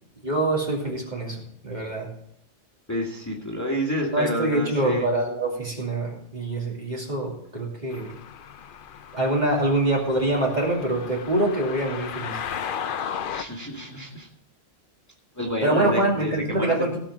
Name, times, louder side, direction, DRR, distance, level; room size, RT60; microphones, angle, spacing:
voice 1, 0.2-2.1 4.1-8.1 9.1-12.4 15.6-17.0, right 1 dB, 35° right, -2 dB, 2.8 m, -25 dB
voice 2, 2.9-5.1 13.3-14.3 15.3-17.0, equal, 15° left, -3 dB, 2.1 m, -29 dB
sound 1, 7.9-13.4, left 8 dB, 55° left, 0.7 m, -35 dB
17.5 x 5.9 x 6.1 m, 0.71 s
omnidirectional pair, 1.3 m